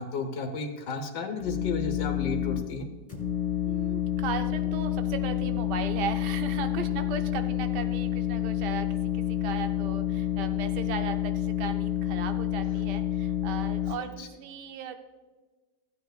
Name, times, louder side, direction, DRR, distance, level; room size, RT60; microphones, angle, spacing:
voice 1, 0.0-2.9 14.2-14.3, left 4 dB, 70° left, 5 dB, 1.7 m, -33 dB
sound 1, 1.4-2.6 3.1-13.9, left 11 dB, 25° left, 2.3 m, -29 dB
voice 2, 3.7-15.0, right 7 dB, 75° right, 7 dB, 1.3 m, -37 dB
16.0 x 9.4 x 2.3 m, 1.3 s
omnidirectional pair, 1.9 m